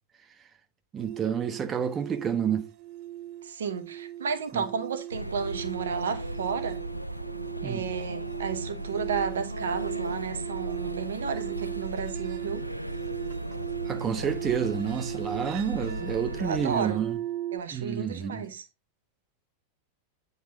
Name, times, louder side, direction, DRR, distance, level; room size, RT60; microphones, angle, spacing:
voice 1, 0.9-2.6 4.5-4.6 7.6-7.8 13.9-17.2 17.7-18.4, right 8 dB, 25° right, 1.1 m, -29 dB
sound 1, 1.0-17.6, right 13 dB, 40° right, 0.5 m, -38 dB
voice 2, 3.4-6.8 7.6-12.7 16.4-17.0 17.5-18.7, right 6 dB, 65° right, 0.9 m, -32 dB
sound 2, 5.1-16.8, right 1 dB, 90° right, 0.4 m, -36 dB
9.3 x 4.1 x 4.0 m
figure-of-eight pair, 90°, 0 cm